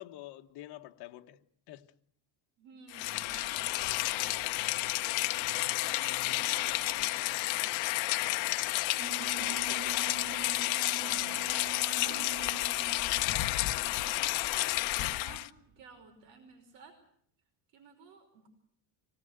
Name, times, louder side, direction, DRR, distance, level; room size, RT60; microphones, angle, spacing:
voice 1, 0.0-1.9 9.7-10.0, left 15 dB, 55° left, 1.4 m, -47 dB
voice 2, 2.6-9.5 10.6-17.0 17.7-18.5, right 4 dB, 80° right, 5.4 m, -55 dB
Rain, 2.9-15.5, left 19 dB, 75° left, 0.9 m, -31 dB
Alarm, 9.0-16.1, right 12 dB, 25° right, 1.9 m, -47 dB
25.5 x 18.5 x 8.1 m
cardioid pair, 175°, 47 cm